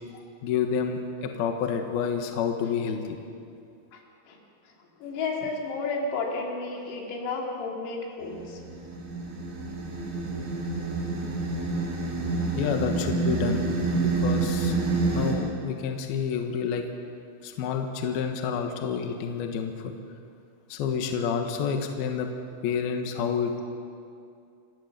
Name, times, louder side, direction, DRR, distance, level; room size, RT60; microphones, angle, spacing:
voice 1, 0.4-3.2 12.6-13.7 13.9-14.9 15.1-16.8 17.4-19.9 20.7-22.3 22.6-23.6, left 6 dB, 65° left, 4 dB, 2.8 m, -29 dB
voice 2, 5.0-8.6, left 3 dB, 85° left, 0 dB, 5.6 m, -32 dB
sound 1, 8.2-15.3, right 3 dB, 70° right, 6.3 m, -28 dB
29.0 x 16.5 x 6.9 m, 2.5 s
omnidirectional pair, 5.9 m